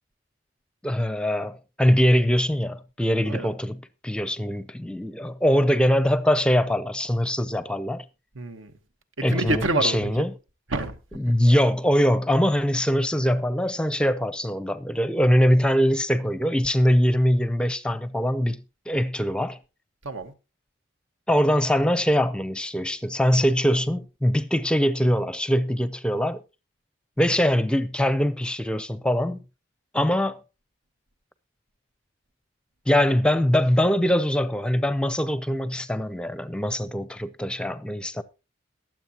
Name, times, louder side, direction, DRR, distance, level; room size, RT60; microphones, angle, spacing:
voice 1, 0.8-3.8 4.0-8.0 9.2-10.3 11.2-19.6 21.3-26.4 27.2-29.4 29.9-30.4 32.9-38.2, equal, 5° left, 0.5 m, -22 dB
voice 2, 8.3-8.7 9.2-10.3 10.7-11.4 20.0-20.3, right 2 dB, 85° right, 1.3 m, -28 dB
22.0 x 7.5 x 2.8 m
head